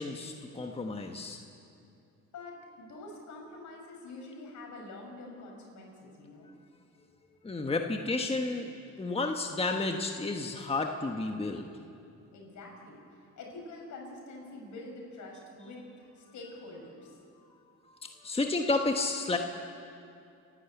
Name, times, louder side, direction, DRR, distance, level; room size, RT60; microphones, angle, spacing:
voice 1, 0.0-1.4 7.4-8.7 9.0-11.7 17.9-19.4, left 3 dB, 20° left, 3 dB, 1.3 m, -31 dB
voice 2, 2.3-6.5 12.3-13.0 13.4-17.2, left 2 dB, 70° left, 0 dB, 5.8 m, -46 dB
28.0 x 11.5 x 8.2 m, 2.5 s
cardioid pair, 90°, 30 cm